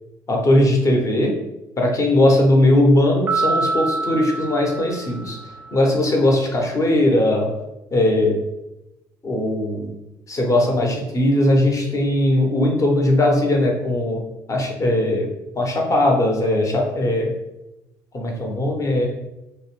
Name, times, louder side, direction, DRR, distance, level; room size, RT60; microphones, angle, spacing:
voice 1, 0.3-1.4 1.8-5.4 5.7-7.5 7.9-8.4 9.2-10.0 10.3-14.2 14.5-15.3 15.6-17.3 18.1-19.1, left 1 dB, 30° left, 1 dB, 0.7 m, -19 dB
sound 1, 3.3-5.8, right 3 dB, 15° right, 0.6 m, -26 dB
2.5 x 2.0 x 3.0 m, 0.93 s
hypercardioid pair, 60°, 10 cm